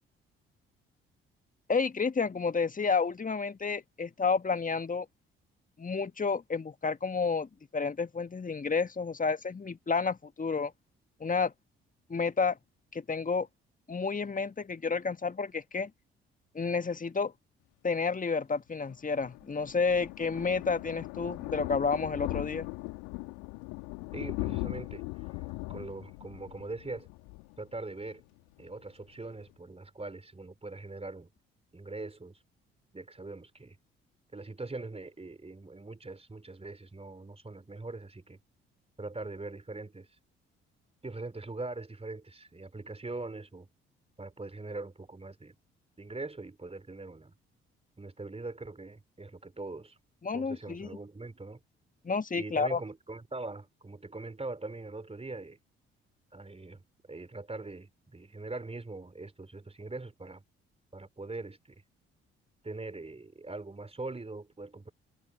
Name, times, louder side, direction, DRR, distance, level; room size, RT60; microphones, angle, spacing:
voice 1, 1.7-5.1 5.8-7.5 7.7-10.7 11.2-11.5 12.1-12.6 12.9-13.5 13.9-15.9 16.5-17.3 17.8-22.7 50.2-50.9 52.0-52.8, left 4 dB, 25° left, 1.8 m, -30 dB
Thunder, 18.9-28.3 28.6-28.8 29.1-29.2 29.4-29.5, left 28 dB, 70° left, 3.0 m, -39 dB
voice 2, 24.1-25.4 25.7-27.1 27.6-28.2 28.6-31.3 31.7-32.4 32.9-33.8 34.3-38.4 39.0-40.1 41.0-43.7 44.2-45.6 46.0-47.3 48.0-50.0 50.3-51.6 52.4-55.6 56.3-60.4 60.9-61.8 62.6-64.9, right 3 dB, 20° right, 4.7 m, -42 dB
figure-of-eight pair, 45°, 30 cm